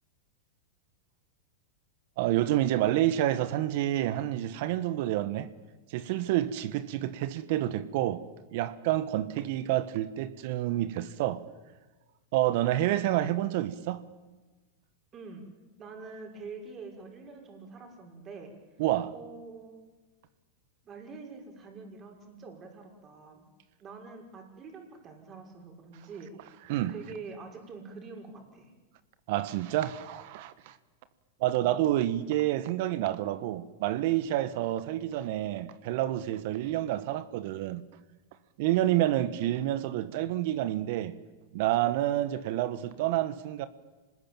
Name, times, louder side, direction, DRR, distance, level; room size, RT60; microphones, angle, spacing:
voice 1, 2.2-5.5 5.9-8.2 8.5-11.4 12.3-14.0 18.8-19.1 26.7-26.9 29.3-30.8 31.4-37.8 38.6-41.2 41.5-43.7, right 14 dB, 60° right, 1.3 m, -28 dB
voice 2, 15.1-15.4 15.8-18.8 19.1-19.8 20.8-23.5 23.8-28.7 31.6-31.7 39.4-39.5, right 4 dB, 30° right, 6.1 m, -46 dB
27.0 x 20.0 x 9.0 m
hypercardioid pair, 110°, 0 cm